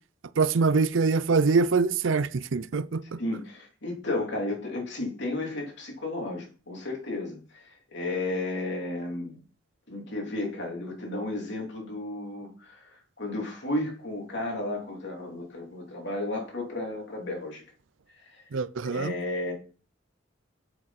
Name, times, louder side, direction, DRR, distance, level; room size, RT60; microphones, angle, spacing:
voice 1, 0.4-3.2 18.5-19.1, right 4 dB, 75° right, 0.5 m, -24 dB
voice 2, 3.2-9.4 9.9-12.9 13.2-17.6 18.3-18.4 18.8-19.5, left 2 dB, 65° left, 3.2 m, -33 dB
7.7 x 7.3 x 4.2 m
head